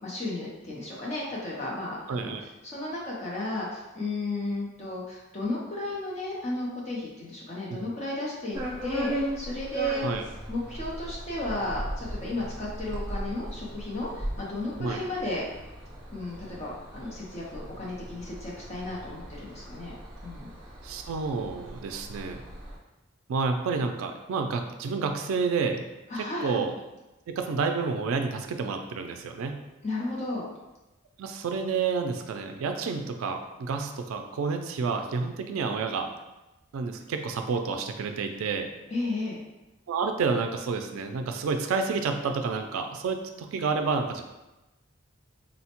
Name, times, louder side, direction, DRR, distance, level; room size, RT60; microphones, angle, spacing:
voice 1, 0.0-2.3 2.6-10.0 10.5-15.4 16.1-20.0 20.2-20.5 26.1-26.6 29.8-30.4 38.9-39.4, left 1 dB, 30° left, -5 dB, 0.5 m, -33 dB
voice 2, 2.1-2.4 7.7-7.9 10.0-10.2 14.8-15.0 20.8-22.4 23.3-25.8 26.2-26.7 27.3-29.6 31.2-36.1 36.7-38.7 39.9-44.2, right 4 dB, 80° right, 6 dB, 0.3 m, -29 dB
sound 1, 8.5-22.8, equal, 20° right, 0.8 m, -38 dB
4.0 x 2.1 x 2.8 m, 1.0 s
head